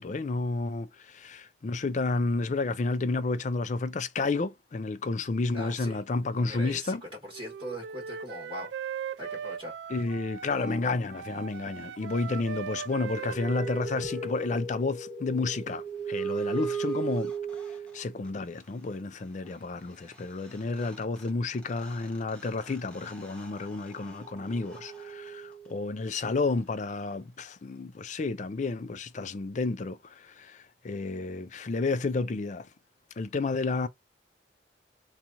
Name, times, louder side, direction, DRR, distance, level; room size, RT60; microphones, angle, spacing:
voice 1, 0.0-7.0 9.9-17.3 17.9-32.7 33.2-33.9, left 3 dB, 45° left, 0.4 m, -31 dB
voice 2, 5.5-6.0 6.3-7.0 7.2-8.7 9.2-9.8, equal, 30° right, 1.1 m, -40 dB
Wind instrument woodwind instrument, 7.3-10.8 11.1-14.6, right 7 dB, 75° right, 0.3 m, -39 dB
sound 1, 12.9-18.3 20.2-20.3 20.5-25.9, right 5 dB, 5° left, 0.8 m, -37 dB
2.9 x 2.4 x 3.8 m
head